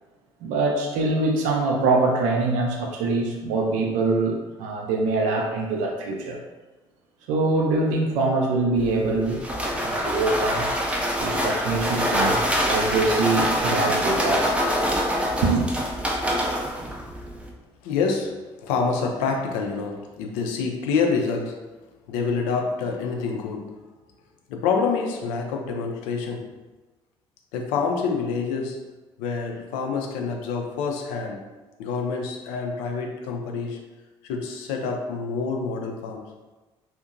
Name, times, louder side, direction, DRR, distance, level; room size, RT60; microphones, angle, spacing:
voice 1, 0.4-6.4 7.3-9.5 9.7-10.7 11.2-14.8 15.4-15.7, right 3 dB, 65° right, 1 dB, 0.4 m, -24 dB
sound 1, 8.8-17.5, equal, 10° right, 0.4 m, -25 dB
voice 2, 17.8-21.6 22.1-23.7 24.5-26.5 27.5-28.8 29.2-31.4 31.8-33.9 34.2-36.2, left 5 dB, 65° left, 2 dB, 0.4 m, -27 dB
2.5 x 2.1 x 2.5 m, 1.2 s
figure-of-eight pair, 50°, 14 cm